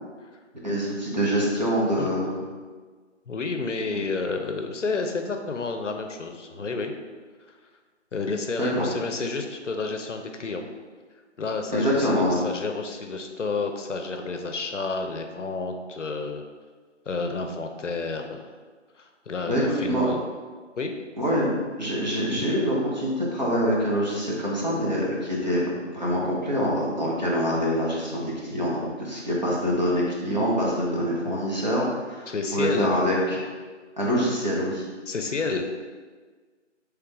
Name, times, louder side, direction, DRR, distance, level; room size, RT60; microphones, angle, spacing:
voice 1, 0.6-2.4 3.9-4.0 6.6-6.7 8.6-9.0 11.7-12.4 19.5-20.1 21.2-21.5 21.8-33.4 34.0-34.9, equal, 35° right, -5 dB, 0.8 m, -25 dB
voice 2, 3.3-6.9 8.1-10.7 11.4-16.4 17.1-18.5 19.0-20.2 20.8-20.9 32.3-33.0 35.1-35.6, left 3 dB, 75° left, 5 dB, 0.6 m, -30 dB
3.3 x 3.2 x 3.6 m, 1.5 s
figure-of-eight pair, 165°, 37 cm